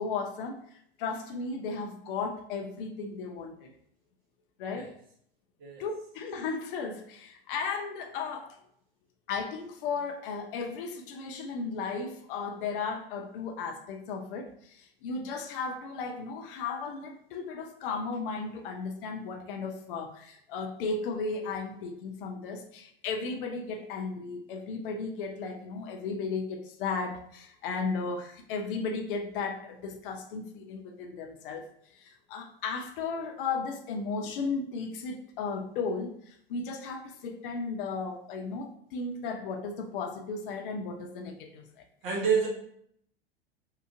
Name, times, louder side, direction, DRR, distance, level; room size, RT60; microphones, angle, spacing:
voice 1, 0.0-3.7 4.6-4.9 5.8-8.6 9.3-41.8, left 4 dB, 60° left, 4 dB, 0.5 m, -35 dB
voice 2, 42.0-42.5, right 6 dB, 45° right, -2 dB, 0.8 m, -27 dB
2.8 x 2.3 x 2.4 m, 0.66 s
figure-of-eight pair, 85°, 30 cm